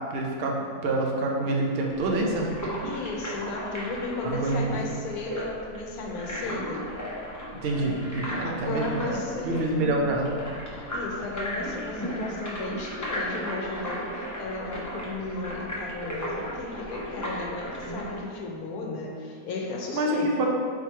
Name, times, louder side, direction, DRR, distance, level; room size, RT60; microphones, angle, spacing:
voice 1, 0.1-2.5 4.2-4.8 7.6-9.1 9.4-10.3 19.9-20.5, right 2 dB, 60° right, 0 dB, 0.6 m, -27 dB
sound 1, 1.9-18.2, equal, 25° left, 0.4 m, -36 dB
voice 2, 2.8-6.9 8.2-10.0 10.9-20.5, left 2 dB, 70° left, 0 dB, 1.1 m, -35 dB
4.0 x 3.0 x 4.4 m, 2.2 s
omnidirectional pair, 1.7 m